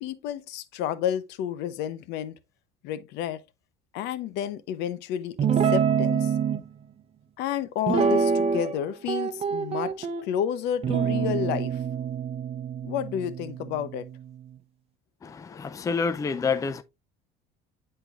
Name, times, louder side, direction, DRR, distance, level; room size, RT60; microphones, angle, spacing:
voice 1, 0.0-2.3 2.8-3.4 3.9-5.4 5.6-6.3 7.4-11.8 12.8-14.1, left 10 dB, 75° left, 0.8 m, -30 dB
Guitar, 5.4-6.6 7.9-8.8 9.1-10.2 10.8-14.3, right 6 dB, 35° right, 0.9 m, -26 dB
voice 2, 15.6-16.8, left 5 dB, 20° left, 0.5 m, -27 dB
9.9 x 4.4 x 2.5 m
cardioid pair, 125°, 18 cm